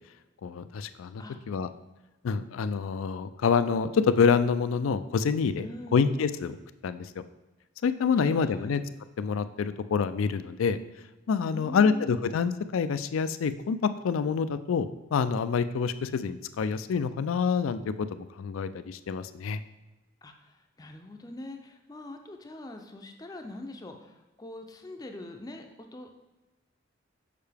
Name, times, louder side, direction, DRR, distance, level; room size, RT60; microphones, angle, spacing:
voice 1, 0.4-1.7 2.2-5.7 5.9-6.6 6.8-7.1 7.8-8.8 9.2-10.8 11.3-13.8 14.0-17.8 18.1-19.6, left 6 dB, 85° left, 12 dB, 0.4 m, -27 dB
voice 2, 5.6-6.1 8.1-8.7 11.5-12.2 20.2-25.7 25.9-26.1, left 2 dB, 20° left, 5 dB, 0.4 m, -43 dB
6.7 x 5.5 x 3.4 m, 1.1 s
head